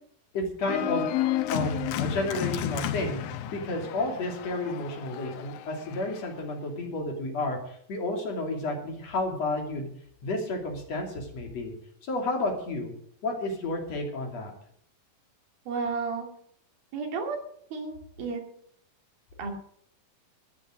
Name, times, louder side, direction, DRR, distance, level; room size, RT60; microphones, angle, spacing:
voice 1, 0.3-1.1 1.5-3.2 3.5-9.9 10.2-11.7 12.0-12.9 13.2-14.5, left 2 dB, 50° left, 2 dB, 3.6 m, -31 dB
Organ, 0.7-6.3, left 11 dB, 90° left, 2.6 m, -32 dB
voice 2, 15.7-16.3 16.9-17.4 17.7-18.4 19.4-19.5, right 4 dB, 90° right, 3 dB, 4.4 m, -32 dB
13.5 x 11.5 x 6.3 m, 0.66 s
omnidirectional pair, 4.1 m